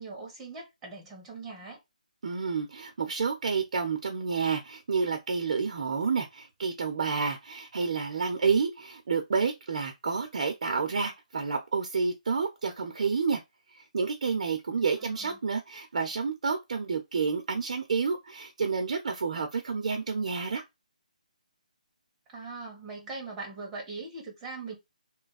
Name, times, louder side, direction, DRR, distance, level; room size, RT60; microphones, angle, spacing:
voice 1, 0.0-1.8 15.0-15.4 22.3-24.8, right 3 dB, 10° right, 1.2 m, -41 dB
voice 2, 2.2-13.4 13.8-20.6, right 5 dB, 50° right, 0.7 m, -29 dB
3.3 x 2.2 x 4.0 m
hypercardioid pair, 165°, 4 cm